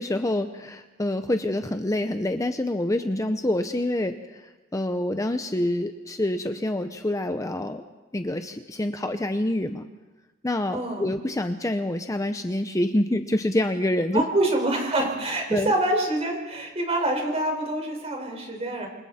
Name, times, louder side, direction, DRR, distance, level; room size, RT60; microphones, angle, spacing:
voice 1, 0.0-7.8 8.1-9.9 10.4-14.2 15.5-15.7, left 1 dB, 15° left, 7 dB, 0.7 m, -26 dB
voice 2, 10.7-11.1 14.1-18.9, right 1 dB, 35° right, 2 dB, 5.1 m, -26 dB
28.5 x 26.0 x 4.3 m, 1.2 s
head